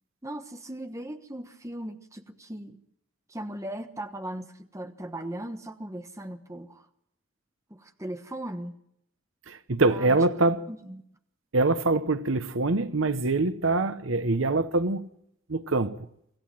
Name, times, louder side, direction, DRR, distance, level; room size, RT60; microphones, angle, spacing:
voice 1, 0.2-2.8 3.3-6.9 7.7-8.8 9.8-10.2 10.7-11.0, right 1 dB, 15° right, 1.2 m, -38 dB
voice 2, 9.5-10.7 11.5-15.1 15.5-16.1, right 2 dB, 85° right, 1.0 m, -24 dB
25.5 x 15.0 x 7.7 m
head